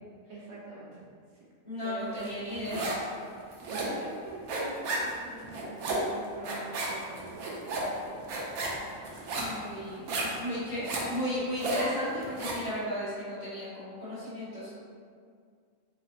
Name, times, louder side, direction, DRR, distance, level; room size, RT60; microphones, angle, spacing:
voice 1, 0.3-1.0 1.3-1.4 1.8-2.3 3.6-8.3, right 2 dB, 60° right, -6 dB, 0.9 m, -44 dB
voice 2, 1.6-2.9 9.3-10.0 10.4-14.7, left 1 dB, 25° left, -14 dB, 1.4 m, -35 dB
sound 1, 2.2-3.1 3.4-12.7, right 2 dB, 80° right, 1.1 m, -33 dB
3.3 x 2.2 x 3.9 m, 2.1 s
omnidirectional pair, 1.5 m